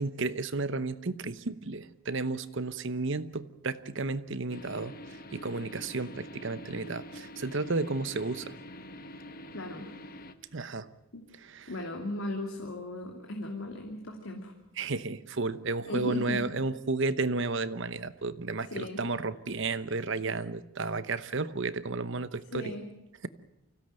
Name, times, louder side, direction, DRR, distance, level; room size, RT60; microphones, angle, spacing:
voice 1, 0.0-4.9 5.3-8.5 10.5-10.9 11.5-11.7 14.8-22.7, right 3 dB, 55° right, 14 dB, 0.9 m, -32 dB
sound 1, 4.5-10.3, equal, 40° left, 1.2 m, -46 dB
voice 2, 9.5-9.9 11.1-11.2 11.7-14.5 15.9-16.4 18.7-19.0 22.5-22.8, left 1 dB, 65° left, 1 dB, 2.8 m, -36 dB
24.5 x 16.5 x 9.1 m, 0.86 s
head